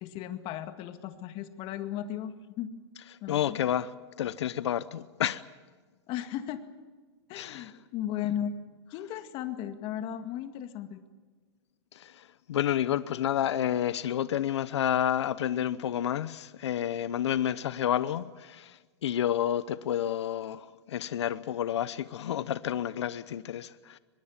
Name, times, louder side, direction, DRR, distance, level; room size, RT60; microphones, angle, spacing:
voice 1, 0.0-2.7 3.2-3.6 6.1-6.6 7.3-8.5 8.9-11.0, left 10 dB, 40° left, 2.1 m, -36 dB
voice 2, 3.3-5.4 7.3-7.7 11.9-24.0, left 10 dB, 85° left, 0.8 m, -30 dB
24.0 x 21.5 x 7.4 m
hypercardioid pair, 135°, 14 cm